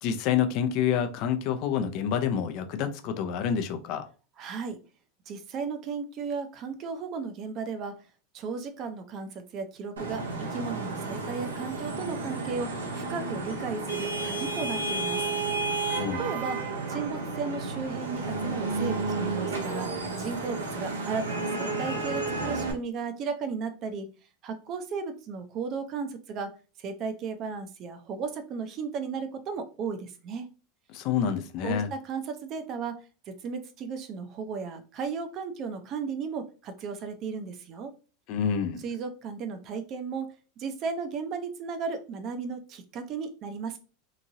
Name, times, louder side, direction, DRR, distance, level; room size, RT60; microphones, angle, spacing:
voice 1, 0.0-4.1 15.9-16.2 30.9-31.9 38.3-38.8, left 8 dB, 55° left, 7 dB, 0.5 m, -28 dB
voice 2, 4.4-4.8 5.3-8.0 8.3-15.3 16.2-16.6 16.9-24.1 24.4-26.5 26.8-30.5 31.6-37.9 38.8-40.3 40.6-43.8, right 5 dB, 45° right, 7 dB, 0.6 m, -35 dB
Vehicle horn car horn honking / Traffic noise roadway noise, 10.0-22.7, right 3 dB, 90° right, 0.7 m, -32 dB
2.9 x 2.6 x 2.6 m, 0.35 s
hypercardioid pair, 90°, 0 cm